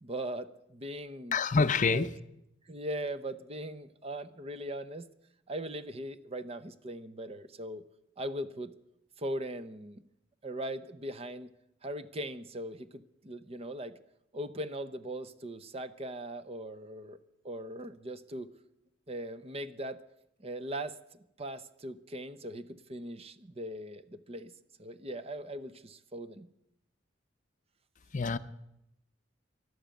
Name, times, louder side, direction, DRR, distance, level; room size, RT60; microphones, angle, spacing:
voice 1, 0.0-1.4 1.9-2.1 2.7-5.1 5.5-7.8 8.2-8.7 9.2-10.0 10.4-11.5 11.8-14.0 14.3-17.2 17.4-18.5 19.1-20.0 20.4-24.5 24.8-26.5, right 1 dB, 30° right, 0.8 m, -40 dB
voice 2, 1.3-2.2 28.1-28.4, left 4 dB, 40° left, 0.6 m, -26 dB
12.5 x 12.0 x 9.0 m
head